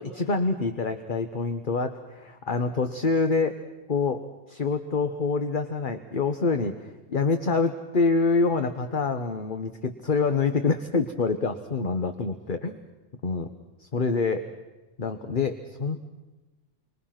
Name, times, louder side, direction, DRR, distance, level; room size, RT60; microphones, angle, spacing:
voice 1, 0.0-3.6 3.9-12.8 13.2-13.5 13.8-14.5 15.0-16.0, left 4 dB, 45° left, 8 dB, 1.3 m, -26 dB
29.0 x 25.0 x 5.9 m, 1.1 s
omnidirectional pair, 1.3 m